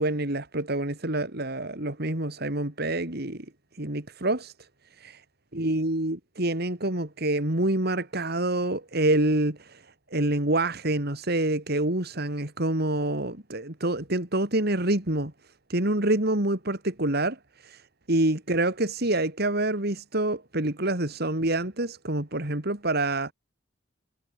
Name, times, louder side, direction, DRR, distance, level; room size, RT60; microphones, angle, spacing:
voice 1, 0.0-3.4 3.8-4.5 5.0-5.2 5.5-9.8 10.1-15.3 15.7-17.4 17.6-17.8 18.1-23.3, right 1 dB, 55° right, 3.2 m, -27 dB
head